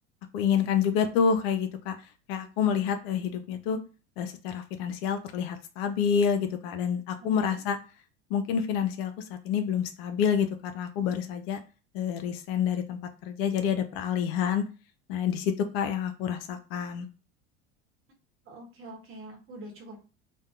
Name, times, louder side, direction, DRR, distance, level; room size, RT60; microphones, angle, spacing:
voice 1, 0.3-2.0 2.3-3.8 4.2-7.8 8.3-11.6 11.9-14.6 15.1-17.1, left 7 dB, 60° left, 8 dB, 0.5 m, -28 dB
voice 2, 18.5-20.0, right 1 dB, 40° right, 1 dB, 1.0 m, -45 dB
2.6 x 2.1 x 2.3 m, 0.34 s
hypercardioid pair, 80°, 34 cm